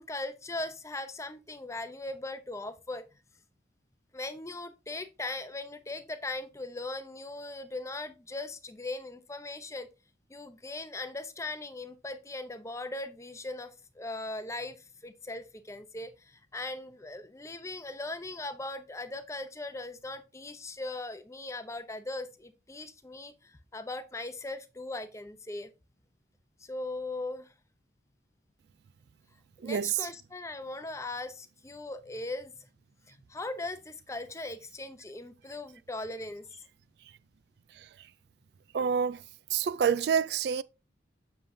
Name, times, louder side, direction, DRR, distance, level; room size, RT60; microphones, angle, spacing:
voice 1, 0.0-3.0 4.1-9.9 10.3-25.7 26.6-27.5 29.6-32.7 33.1-36.5, left 2 dB, 15° left, 0.6 m, -39 dB
voice 2, 29.6-30.0 37.8-37.9 38.7-39.2 39.5-40.6, right 7 dB, 60° right, 0.3 m, -27 dB
7.6 x 6.8 x 2.7 m
head